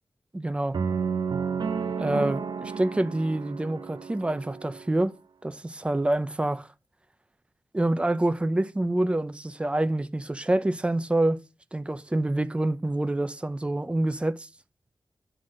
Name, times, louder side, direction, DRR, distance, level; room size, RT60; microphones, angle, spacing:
voice 1, 0.3-0.8 2.0-5.2 5.4-6.7 7.7-11.4 11.7-14.5, right 1 dB, 15° right, 0.6 m, -26 dB
sound 1, 0.7-4.9, right 6 dB, 65° right, 0.7 m, -31 dB
10.5 x 4.1 x 6.3 m
wide cardioid pair, 150°, 8 cm